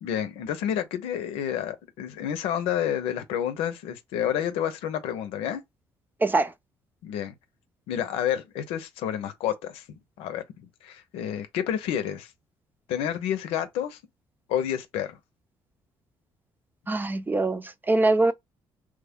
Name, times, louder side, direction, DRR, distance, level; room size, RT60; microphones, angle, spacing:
voice 1, 0.0-5.6 7.0-7.3 7.9-12.3 12.9-14.0 14.5-15.2, left 10 dB, 90° left, 0.7 m, -29 dB
voice 2, 6.2-6.5 16.9-18.3, right 2 dB, 20° right, 0.6 m, -23 dB
3.2 x 2.2 x 3.6 m
cardioid pair, 85°, 10 cm